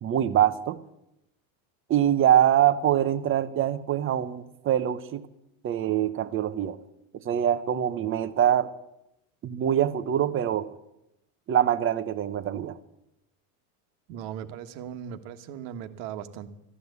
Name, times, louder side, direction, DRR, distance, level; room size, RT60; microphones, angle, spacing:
voice 1, 0.0-0.8 1.9-5.2 5.6-6.8 7.2-8.7 9.4-10.7 11.5-12.8, right 10 dB, 30° right, 13 dB, 0.8 m, -24 dB
voice 2, 14.1-16.5, right 9 dB, 65° right, 9 dB, 1.4 m, -38 dB
14.0 x 10.5 x 8.1 m, 0.85 s
supercardioid pair, 140°, 44 cm